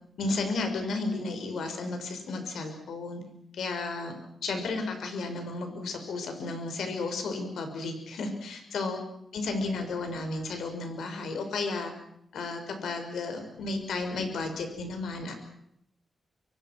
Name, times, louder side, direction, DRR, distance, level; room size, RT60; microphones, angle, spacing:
voice 1, 0.2-3.2 3.5-4.1 4.4-9.0 9.3-11.9 12.3-15.3, left 3 dB, 90° left, 5 dB, 6.5 m, -33 dB
28.5 x 25.5 x 6.3 m, 0.75 s
cardioid pair, 110°, 0 cm